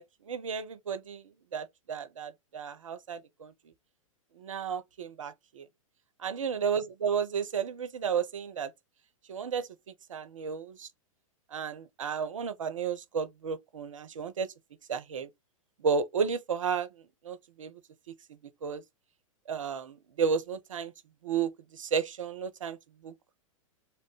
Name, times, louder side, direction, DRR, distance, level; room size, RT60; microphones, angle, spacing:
voice 1, 0.0-3.5 4.4-5.7 6.2-8.7 9.3-9.7 10.1-10.9 11.5-14.5 14.9-15.3 15.8-16.9 17.2-17.8 18.6-18.8 19.5-20.9 21.2-22.8 23.0-23.1, right 6 dB, 65° right, 0.5 m, -33 dB
2.9 x 2.0 x 2.9 m
figure-of-eight pair, 100°, 18 cm